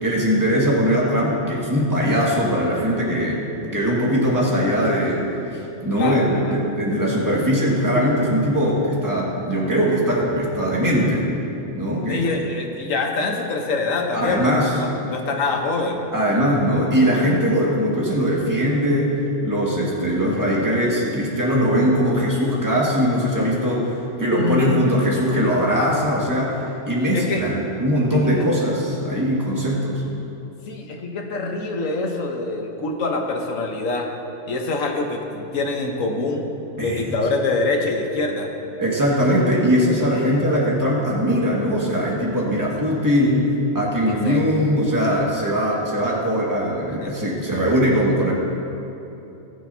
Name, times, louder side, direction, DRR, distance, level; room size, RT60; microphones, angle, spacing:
voice 1, 0.0-5.3 5.8-11.2 11.7-12.2 14.1-14.7 16.1-19.1 19.4-23.9 24.2-26.5 26.9-30.0 36.8-37.2 38.8-43.5 43.7-48.3, equal, 15° right, -5 dB, 1.7 m, -20 dB
voice 2, 5.9-6.6 12.0-16.0 24.3-24.8 27.1-27.4 28.4-28.5 30.7-34.1 34.5-36.5 36.8-38.5 40.1-40.6 44.1-44.4 47.0-47.1, left 3 dB, 85° left, 2 dB, 1.4 m, -25 dB
19.5 x 6.7 x 2.7 m, 2.9 s
omnidirectional pair, 1.3 m